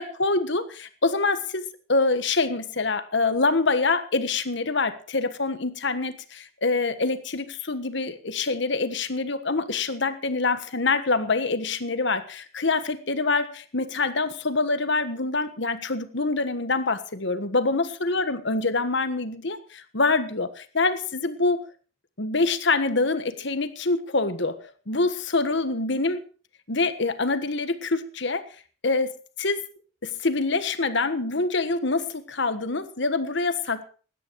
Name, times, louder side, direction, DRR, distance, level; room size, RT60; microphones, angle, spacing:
voice 1, 0.0-21.6 22.2-26.2 26.7-28.4 28.8-29.1 29.4-29.6 30.0-33.8, left 3 dB, 60° left, 11 dB, 1.4 m, -25 dB
17.0 x 11.5 x 4.7 m, 0.39 s
head